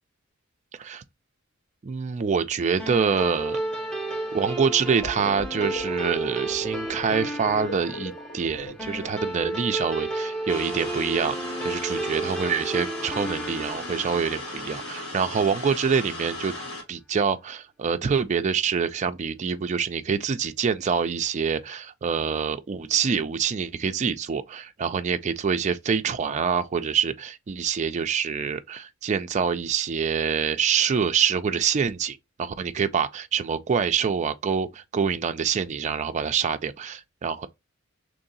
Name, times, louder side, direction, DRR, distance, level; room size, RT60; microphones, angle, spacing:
voice 1, 1.8-3.6 4.3-11.4 11.6-16.6 16.9-37.5, right 6 dB, 35° right, 0.3 m, -26 dB
sound 1, 2.8-15.5, right 2 dB, 5° left, 0.7 m, -33 dB
sound 2, 5.0-9.4, left 2 dB, 35° left, 0.9 m, -39 dB
sound 3, 10.5-16.8, left 2 dB, 60° left, 1.6 m, -37 dB
3.1 x 2.7 x 3.9 m
head